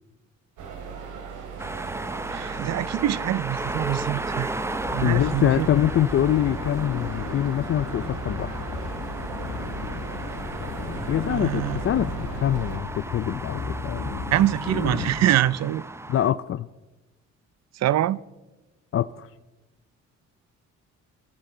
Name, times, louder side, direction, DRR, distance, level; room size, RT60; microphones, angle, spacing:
sound 1, 0.6-12.8, right 6 dB, 80° right, 2.8 m, -38 dB
sound 2, 1.6-16.3, right 2 dB, 10° right, 0.6 m, -35 dB
voice 1, 2.3-5.7 11.3-11.8 14.3-15.8 17.7-18.2, right 13 dB, 60° right, 0.5 m, -25 dB
sound 3, 4.9-15.1, left 4 dB, 65° left, 2.4 m, -34 dB
voice 2, 5.0-8.5 11.1-14.0 16.1-16.7 18.9-19.3, left 11 dB, 45° left, 0.5 m, -24 dB
22.5 x 14.0 x 3.9 m
cardioid pair, 90°, 30 cm